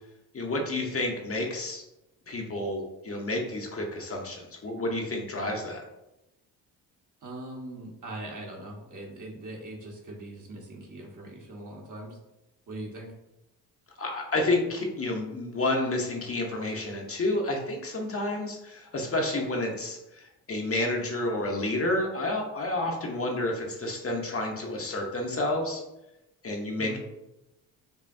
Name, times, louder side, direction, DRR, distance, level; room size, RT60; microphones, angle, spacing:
voice 1, 0.3-1.8 2.3-5.8 14.0-25.8 26.4-27.0, left 2 dB, 35° left, 1 dB, 0.8 m, -30 dB
voice 2, 7.2-12.2 12.7-13.1 26.8-27.0, right 1 dB, 50° right, -1 dB, 1.2 m, -41 dB
5.5 x 2.2 x 2.6 m, 0.93 s
cardioid pair, 70°, 40 cm